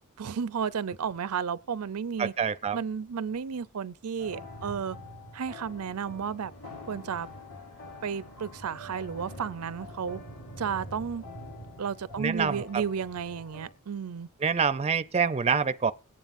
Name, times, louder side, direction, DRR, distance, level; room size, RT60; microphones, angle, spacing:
voice 1, 0.2-2.3 2.7-5.0 5.3-6.5 6.9-7.3 8.0-10.2 10.6-11.2 11.8-14.3, right 7 dB, 90° right, 0.5 m, -33 dB
voice 2, 2.2-2.8 12.2-12.6 14.4-15.9, right 6 dB, 30° right, 0.5 m, -26 dB
sound 1, 4.2-13.7, left 1 dB, 65° left, 4.4 m, -45 dB
21.5 x 9.1 x 2.6 m
head